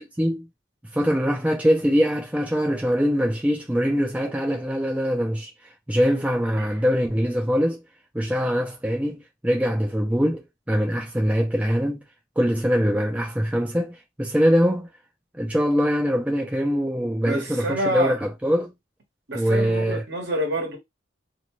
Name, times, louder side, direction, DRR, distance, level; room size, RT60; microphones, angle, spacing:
voice 1, 0.9-5.5 5.9-7.8 8.1-12.0 12.4-14.9 15.4-18.7 19.3-20.0, equal, 5° right, 0.4 m, -23 dB
voice 2, 17.2-18.1 19.3-20.8, right 1 dB, 60° right, 1.1 m, -28 dB
2.6 x 2.2 x 3.0 m
head